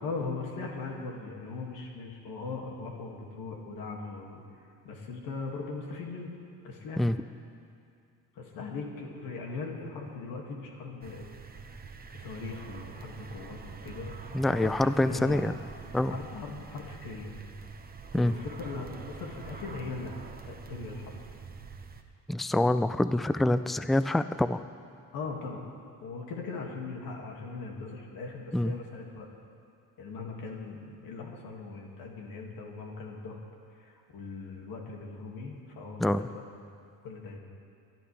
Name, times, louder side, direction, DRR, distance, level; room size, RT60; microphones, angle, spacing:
voice 1, 0.0-4.4 4.8-6.3 6.6-7.1 8.3-11.2 12.1-14.1 14.5-15.4 16.1-17.3 18.1-20.2 20.4-21.1 25.1-25.6 26.0-29.3 30.0-33.4 33.8-36.6 37.0-37.4, left 4 dB, 75° left, 0 dB, 2.3 m, -39 dB
sound 1, 11.0-22.0, right 5 dB, 25° right, 1.0 m, -45 dB
voice 2, 14.3-15.5 15.9-16.1 18.1-18.3 22.3-24.6 28.5-28.7 36.0-36.2, left 1 dB, ahead, 12 dB, 0.3 m, -26 dB
23.0 x 12.0 x 3.4 m, 2.4 s
supercardioid pair, 80°, 35 cm